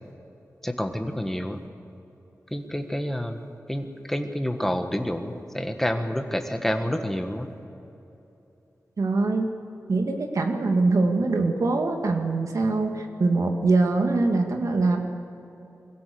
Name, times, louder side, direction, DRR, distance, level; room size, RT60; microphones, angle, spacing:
voice 1, 0.6-1.6 2.5-7.5, equal, 5° left, 6 dB, 1.6 m, -28 dB
voice 2, 9.0-9.5 9.9-15.0, right 3 dB, 70° right, 4 dB, 2.0 m, -23 dB
24.0 x 16.5 x 7.0 m, 3.0 s
wide cardioid pair, 75°, 6 cm